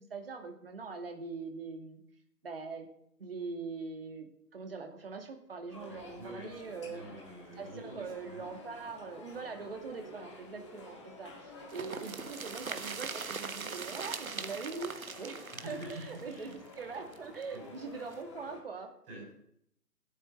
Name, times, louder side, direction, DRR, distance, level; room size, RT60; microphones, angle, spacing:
voice 1, 0.0-2.0 2.4-2.9 3.2-7.0 7.6-18.9 19.2-19.3, right 4 dB, 35° right, 5 dB, 2.4 m, -42 dB
sound 1, 5.7-18.6, left 2 dB, 15° left, 1.9 m, -51 dB
voice 2, 5.9-8.7 15.5-16.9 17.5-17.7 19.0-19.3, right 1 dB, 15° right, -7 dB, 6.4 m, -47 dB
sound 2, 11.7-17.4 17.7-17.8 18.1-18.2, right 5 dB, 55° right, 1.4 m, -41 dB
15.0 x 9.0 x 8.0 m, 0.72 s
figure-of-eight pair, 160°, 50 cm